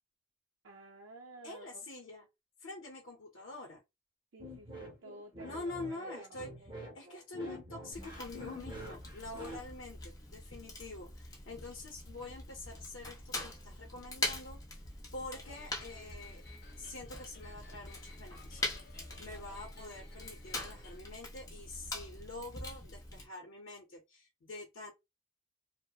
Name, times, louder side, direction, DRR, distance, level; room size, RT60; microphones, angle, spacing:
voice 1, 0.6-1.8 4.3-6.7, right 2 dB, 75° right, 0.5 m, -52 dB
voice 2, 1.4-2.3 2.6-3.8 5.4-6.5 6.9-14.6 15.1-16.4 16.7-18.6 18.9-24.9, left 2 dB, 80° left, 0.6 m, -46 dB
sound 1, 4.4-9.6, equal, 25° right, 0.8 m, -47 dB
Fire, 7.9-23.2, left 2 dB, 15° left, 0.5 m, -43 dB
sound 2, 15.3-21.0, left 3 dB, 50° left, 1.0 m, -57 dB
2.7 x 2.0 x 2.3 m
head